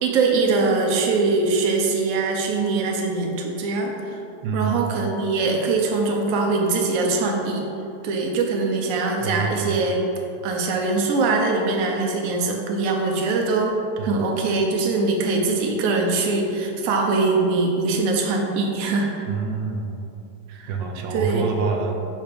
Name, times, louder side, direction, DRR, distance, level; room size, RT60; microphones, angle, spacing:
voice 1, 0.0-4.2 4.5-7.7 8.0-10.0 10.4-13.8 14.0-19.3 20.5-20.6 21.1-21.5, right 3 dB, 60° right, 1 dB, 0.9 m, -22 dB
voice 2, 4.4-4.8 9.2-9.9 14.0-14.2 19.3-20.0 20.7-21.9, right 5 dB, 85° right, 2 dB, 1.3 m, -27 dB
6.4 x 3.3 x 5.0 m, 2.7 s
omnidirectional pair, 2.0 m